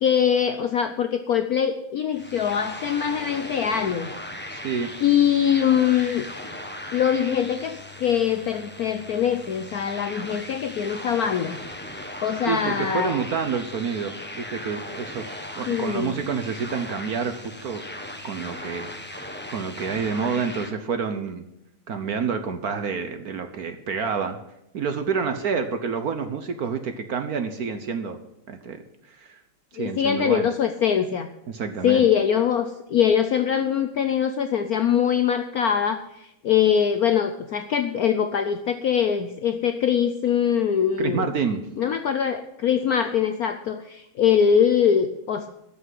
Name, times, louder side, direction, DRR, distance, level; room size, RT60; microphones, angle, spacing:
voice 1, 0.0-4.1 5.0-6.3 6.9-11.6 12.2-13.2 15.7-16.2 29.8-31.3 31.8-41.3 41.8-45.5, left 8 dB, 65° left, 8 dB, 0.9 m, -23 dB
sound 1, 2.1-20.7, left 1 dB, 10° left, 0.7 m, -38 dB
voice 2, 4.5-4.9 12.5-17.8 18.2-18.9 19.5-21.4 21.9-24.4 24.7-28.2 28.5-29.4 29.7-30.5 31.5-32.1 41.0-41.6, right 6 dB, 55° right, 8 dB, 1.1 m, -28 dB
13.5 x 5.9 x 9.6 m, 0.85 s
omnidirectional pair, 2.3 m